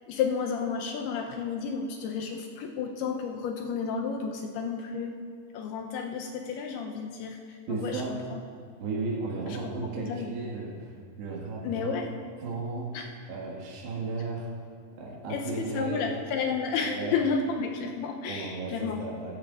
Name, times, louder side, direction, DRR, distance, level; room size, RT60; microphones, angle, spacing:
voice 1, 0.1-5.1 5.5-8.0 8.3-8.4 10.0-10.3 11.6-12.1 12.9-13.0 15.3-19.0, left 5 dB, 80° left, 2 dB, 2.5 m, -31 dB
voice 2, 7.7-8.2 8.8-10.9 11.2-12.0 12.4-13.0 13.3-14.5 15.0-16.1 16.8-17.2 18.3-19.4, right 3 dB, 80° right, -3 dB, 3.9 m, -34 dB
15.0 x 13.5 x 2.4 m, 2.2 s
omnidirectional pair, 4.9 m